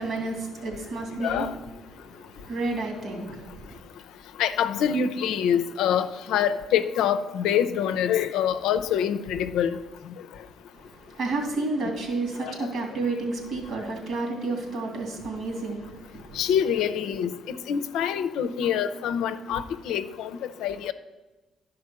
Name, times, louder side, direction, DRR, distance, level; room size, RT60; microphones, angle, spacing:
voice 1, 0.0-1.5 1.9-3.8 10.7-16.4, right 3 dB, 65° right, 2 dB, 2.9 m, -31 dB
voice 2, 1.2-1.5 4.4-9.8 12.4-12.5 16.4-17.3 17.7-20.3 20.6-20.9, left 8 dB, 80° left, 11 dB, 0.5 m, -25 dB
11.5 x 5.0 x 6.0 m, 1.1 s
supercardioid pair, 65°, 0 cm